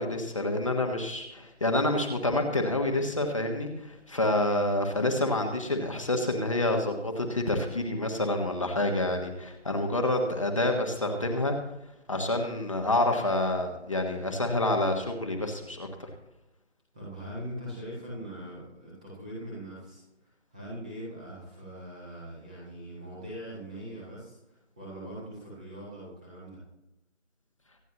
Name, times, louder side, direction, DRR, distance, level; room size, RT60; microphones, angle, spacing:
voice 1, 0.0-11.5 12.1-16.1, left 1 dB, 25° left, 3 dB, 1.5 m, -28 dB
voice 2, 16.9-26.6, right 1 dB, 5° right, -6 dB, 1.4 m, -42 dB
25.5 x 10.0 x 3.0 m, 0.91 s
figure-of-eight pair, 165°, 36 cm